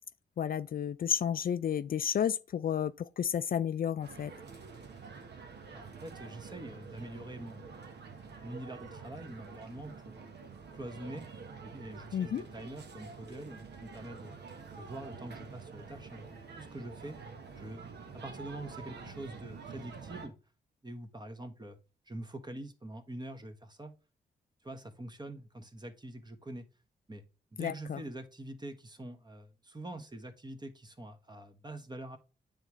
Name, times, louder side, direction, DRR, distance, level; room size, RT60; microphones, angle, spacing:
voice 1, 0.4-4.3 12.1-12.4 27.6-28.0, left 8 dB, 55° left, 0.4 m, -31 dB
sound 1, 4.0-20.3, right 5 dB, 75° right, 1.2 m, -48 dB
voice 2, 5.7-7.7 8.4-10.3 10.7-11.3 11.6-14.4 14.8-17.2 17.6-20.3 20.8-21.8 22.1-23.9 24.6-26.6 27.1-27.2 27.5-32.2, right 1 dB, 25° right, 1.3 m, -45 dB
9.0 x 3.6 x 3.1 m
cardioid pair, 50°, 18 cm